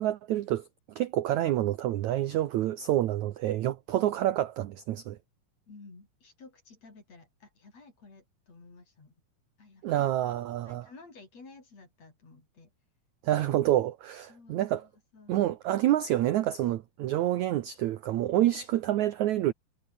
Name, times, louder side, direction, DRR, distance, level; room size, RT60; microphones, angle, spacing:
voice 1, 0.0-5.2 9.8-10.9 13.2-14.9 15.3-19.5, right 13 dB, 75° right, 1.7 m, -28 dB
voice 2, 5.7-9.1 9.6-10.4 10.6-12.7 14.3-15.4, left 3 dB, 40° left, 7.1 m, -53 dB
omnidirectional pair, 4.5 m